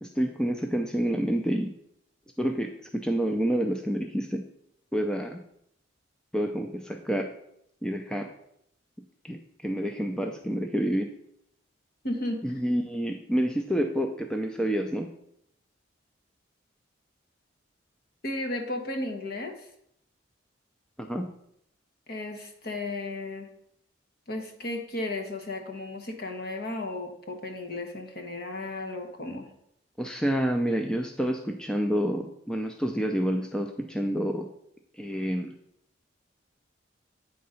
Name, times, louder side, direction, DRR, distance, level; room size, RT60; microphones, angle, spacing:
voice 1, 0.0-1.7 2.4-4.4 4.9-5.4 6.3-7.3 7.8-8.3 9.2-11.1 12.4-15.1 21.0-21.3 30.0-34.5 35.0-35.5, equal, 5° left, 4 dB, 0.4 m, -28 dB
voice 2, 12.0-12.4 18.2-19.7 22.1-23.5 24.3-29.5, left 2 dB, 50° left, 4 dB, 1.1 m, -34 dB
8.5 x 3.8 x 5.5 m, 0.74 s
head